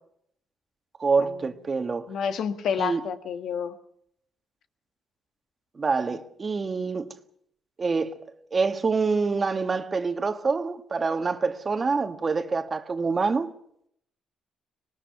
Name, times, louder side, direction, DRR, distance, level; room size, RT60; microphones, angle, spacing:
voice 1, 1.0-2.1 2.8-3.0 5.7-7.1 7.8-8.2 8.5-13.5, right 4 dB, 35° right, 1.6 m, -26 dB
voice 2, 2.1-3.7, left 7 dB, 70° left, 1.6 m, -29 dB
25.0 x 19.5 x 6.0 m
cardioid pair, 90°, 0 cm